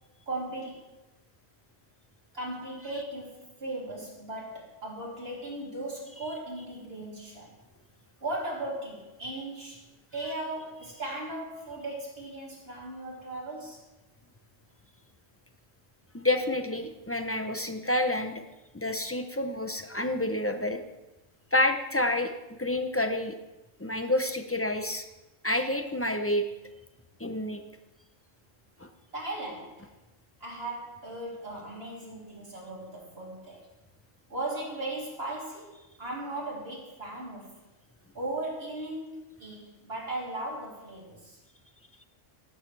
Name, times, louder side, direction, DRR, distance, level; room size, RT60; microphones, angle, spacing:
voice 1, 0.3-0.9 2.3-7.6 8.2-9.8 10.1-13.8 29.1-29.9 30.4-33.7 34.3-37.6 38.1-41.4, right 2 dB, 50° right, -4 dB, 3.5 m, -37 dB
voice 2, 16.1-18.4 18.7-20.8 21.5-23.4 23.8-25.0 25.4-26.4 27.2-27.6 28.8-28.9, left 1 dB, 15° left, 7 dB, 0.5 m, -28 dB
17.5 x 9.3 x 3.3 m, 1.0 s
omnidirectional pair, 1.4 m